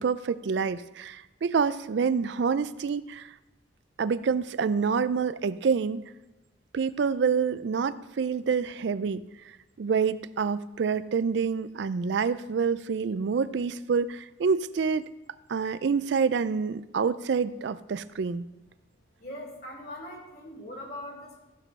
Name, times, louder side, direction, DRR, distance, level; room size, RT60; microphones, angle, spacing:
voice 1, 0.0-3.3 4.0-6.0 6.7-9.2 9.8-15.1 15.5-18.4, right 5 dB, 60° right, 15 dB, 0.4 m, -27 dB
voice 2, 19.2-21.4, left 1 dB, 50° left, 0 dB, 2.8 m, -41 dB
15.0 x 5.3 x 5.3 m, 1.0 s
head